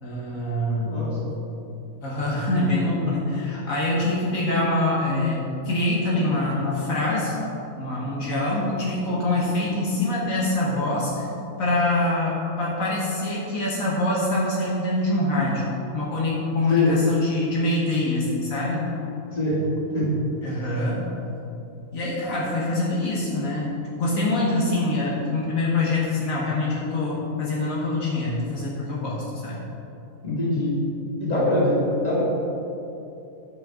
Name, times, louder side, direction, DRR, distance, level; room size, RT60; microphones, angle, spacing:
voice 1, 0.0-1.0 2.0-7.4 7.8-11.3 11.6-15.6 15.9-18.9 20.4-21.0 21.9-29.6, left 2 dB, 75° left, -5 dB, 1.8 m, -25 dB
voice 2, 0.8-1.2 16.7-16.9 19.3-19.6 19.9-20.1 30.2-30.8 31.2-32.2, left 1 dB, 30° left, -7 dB, 2.4 m, -23 dB
9.3 x 6.1 x 5.0 m, 2.8 s
omnidirectional pair, 1.4 m